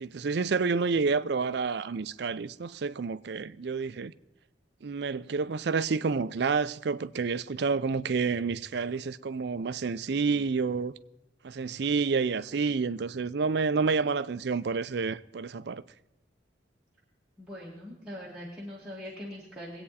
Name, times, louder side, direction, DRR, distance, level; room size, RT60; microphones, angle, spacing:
voice 1, 0.0-4.1 4.8-10.9 11.4-15.8, right 4 dB, 60° right, 0.5 m, -29 dB
voice 2, 17.4-19.8, equal, 5° right, 2.2 m, -42 dB
21.5 x 8.6 x 4.2 m
head